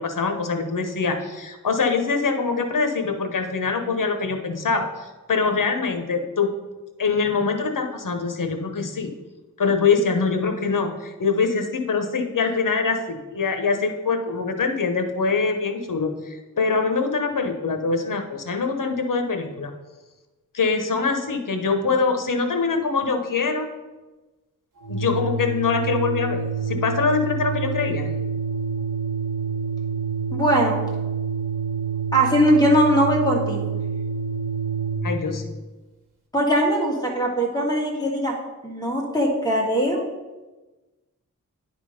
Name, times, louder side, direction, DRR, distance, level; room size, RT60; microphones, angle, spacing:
voice 1, 0.0-6.5 7.0-9.1 9.6-19.7 20.5-23.7 24.9-28.1 35.0-35.5, left 4 dB, 70° left, 6 dB, 0.9 m, -24 dB
Organ, 24.8-35.2, right 5 dB, 70° right, 1.5 m, -27 dB
voice 2, 30.3-30.8 32.1-33.6 36.3-38.3 38.6-40.0, equal, 10° left, -2 dB, 1.8 m, -20 dB
10.0 x 3.7 x 5.0 m, 1.2 s
wide cardioid pair, 95°, 33 cm